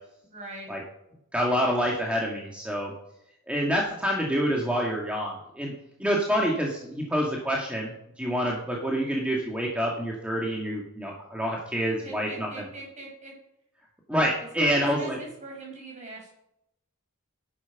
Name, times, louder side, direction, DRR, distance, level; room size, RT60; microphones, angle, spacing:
voice 1, 0.3-0.7 12.0-13.3 14.5-16.3, right 2 dB, 35° right, 0 dB, 6.1 m, -41 dB
voice 2, 1.3-2.9 3.5-5.7 6.0-12.7 14.1-15.2, equal, 5° right, -2 dB, 2.1 m, -27 dB
13.5 x 11.0 x 6.0 m, 0.82 s
head